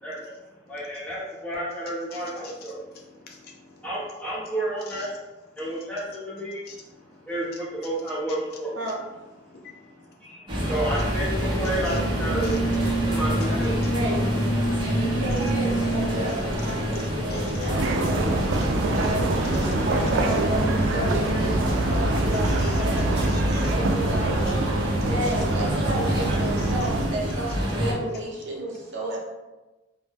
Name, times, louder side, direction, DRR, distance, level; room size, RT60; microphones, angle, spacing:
voice 1, 0.7-2.8 3.8-5.1 5.6-6.6 7.3-8.8 10.2-10.3 10.7-12.5 13.1-13.8 21.3-21.4, right 1 dB, 5° left, -7 dB, 0.8 m, -30 dB
voice 2, 2.1-2.6 2.9-3.9 4.9-5.1 6.7-6.8 9.5-10.0 11.9-12.0 12.4-12.5 13.8-13.9 16.6-16.7 17.0-17.7 19.5-19.7 22.4-23.7 26.6-26.7, left 5 dB, 55° left, 0 dB, 0.4 m, -45 dB
sound 1, 10.5-27.9, equal, 25° right, 0.6 m, -26 dB
voice 3, 13.9-14.2 14.9-19.3 19.5-23.3 23.7-24.4 25.0-29.2, right 1 dB, 75° right, -3 dB, 0.7 m, -32 dB
sound 2, 17.7-27.1, right 2 dB, 90° right, 0.3 m, -26 dB
2.1 x 2.1 x 3.3 m, 1.1 s
head